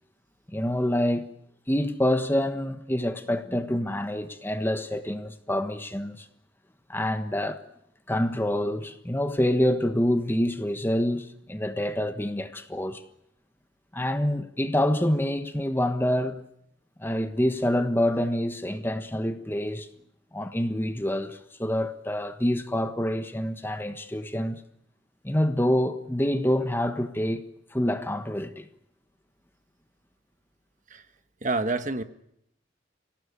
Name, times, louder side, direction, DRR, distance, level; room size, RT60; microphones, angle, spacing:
voice 1, 0.5-1.3 1.7-6.3 6.9-7.6 8.1-13.0 13.9-16.4 17.0-19.9 20.3-24.6 25.2-28.7, left 1 dB, 10° left, 1.3 m, -26 dB
voice 2, 31.4-32.0, right 3 dB, 40° right, 1.3 m, -27 dB
25.5 x 18.0 x 9.7 m
head